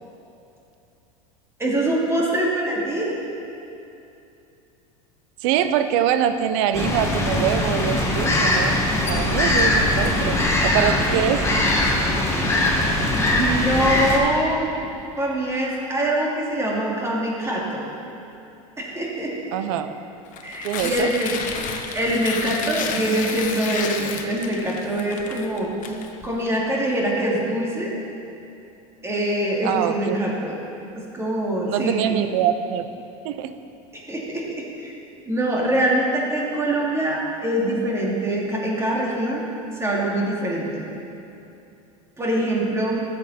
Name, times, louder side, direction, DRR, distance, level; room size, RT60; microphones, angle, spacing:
voice 1, 1.6-3.1 13.3-14.8 15.2-17.9 18.8-19.3 20.4-21.3 21.7-26.0 26.2-27.9 29.0-30.6 30.9-32.2 33.9-34.9 35.3-39.4 39.8-40.8 42.2-43.0, right 1 dB, 15° right, -4 dB, 2.5 m, -24 dB
voice 2, 5.4-8.8 9.1-11.4 19.5-19.9 20.6-21.1 29.6-30.2 31.6-32.9 33.2-33.5, right 10 dB, 65° right, 10 dB, 0.7 m, -24 dB
sound 1, 6.7-14.2, left 1 dB, 15° left, 2.0 m, -21 dB
Tearing, 20.3-26.5, left 6 dB, 50° left, 1.1 m, -31 dB
13.5 x 7.9 x 4.3 m, 2.8 s
hypercardioid pair, 100°, 18 cm